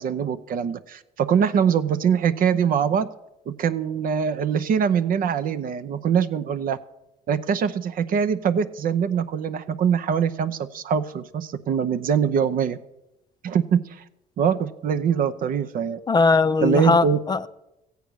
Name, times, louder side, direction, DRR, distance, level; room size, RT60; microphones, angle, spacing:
voice 1, 0.0-3.1 3.5-6.8 7.3-12.8 13.4-14.0 14.4-16.0 16.6-17.2, right 7 dB, 55° right, 0.7 m, -23 dB
voice 2, 16.1-17.5, left 4 dB, 25° left, 0.5 m, -19 dB
14.5 x 8.4 x 6.3 m
cardioid pair, 110°, 17 cm